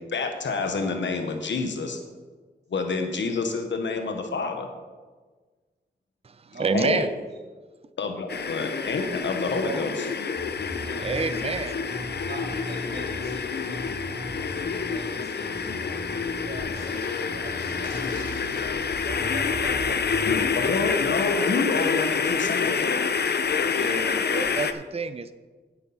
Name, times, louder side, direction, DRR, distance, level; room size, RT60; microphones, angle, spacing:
voice 1, 0.1-2.0 2.7-4.7 6.7-7.1 8.0-9.9 20.3-23.0, left 4 dB, 90° left, 5 dB, 1.0 m, -28 dB
voice 2, 6.6-7.1 11.0-11.8 23.7-25.3, right 5 dB, 35° right, 11 dB, 0.5 m, -28 dB
sound 1, 8.3-24.7, left 5 dB, 65° left, 0.6 m, -27 dB
sound 2, 10.3-11.5 11.9-13.3 13.6-15.1 15.4-16.8 17.2-18.6 19.0-20.4 20.7-20.8, equal, 90° right, 2.8 m, -39 dB
voice 3, 10.6-11.4 12.1-13.8 14.8-15.8 16.4-18.0 18.7-20.6 24.6-24.9, right 2 dB, 65° right, -4 dB, 2.9 m, -42 dB
sound 3, 16.7-18.9, left 1 dB, 45° left, 3.3 m, -45 dB
8.8 x 8.2 x 5.5 m, 1.4 s
wide cardioid pair, 70°, 18 cm